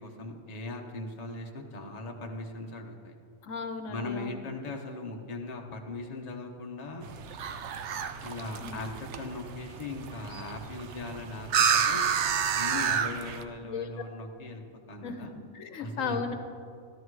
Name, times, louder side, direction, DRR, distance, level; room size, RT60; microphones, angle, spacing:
voice 1, 0.0-3.2 3.9-7.1 8.2-12.1 12.5-14.6 14.9-15.3 15.8-16.2, left 2 dB, 30° left, 2 dB, 1.1 m, -39 dB
voice 2, 3.4-4.5 8.6-8.8 13.6-13.9 15.0-15.3 15.5-16.3, left 5 dB, 75° left, 7 dB, 1.2 m, -35 dB
sound 1, 7.0-13.4, right 7 dB, 65° right, 0.9 m, -30 dB
13.0 x 12.0 x 4.8 m, 2.4 s
omnidirectional pair, 1.4 m